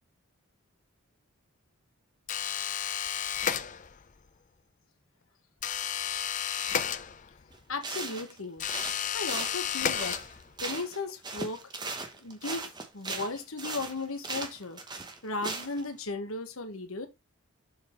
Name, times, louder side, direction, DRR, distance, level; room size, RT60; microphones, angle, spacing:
sound 1, 2.3-4.1 5.6-7.5 8.6-10.6, left 8 dB, 35° left, 0.5 m, -32 dB
sound 2, 7.5-7.6 7.8-8.4 8.7-11.0 11.2-15.8, right 3 dB, 20° right, 1.0 m, -38 dB
voice 1, 7.7-8.6 9.1-10.2 10.6-11.6 12.2-12.7 12.9-14.8 15.2-17.1, left 3 dB, 70° left, 1.3 m, -35 dB
7.1 x 4.0 x 4.4 m
head